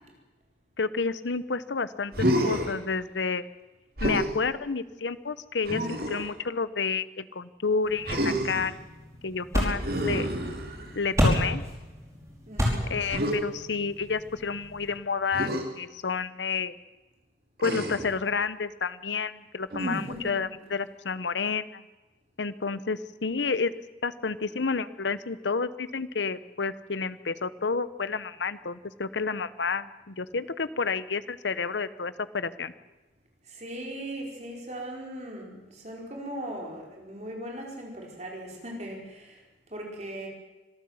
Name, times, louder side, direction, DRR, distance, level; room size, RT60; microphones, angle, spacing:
voice 1, 0.8-3.4 4.0-8.8 9.2-10.3 11.0-11.6 12.9-16.7 17.6-21.8 22.4-23.7 24.0-32.7, left 4 dB, 85° left, 15 dB, 0.9 m, -30 dB
Human voice, 2.1-2.7 4.0-4.3 5.6-6.3 8.0-8.7 9.8-11.0 13.1-13.4 15.3-15.6 17.6-18.1 19.7-20.2, right 1 dB, 55° right, 3.1 m, -29 dB
sound 1, 7.8-14.9, equal, 15° right, 5.4 m, -31 dB
voice 2, 12.5-13.0 20.1-20.3 33.5-39.4 39.7-40.3, right 1 dB, 40° right, 0 dB, 4.7 m, -39 dB
25.0 x 14.0 x 7.9 m, 1.2 s
head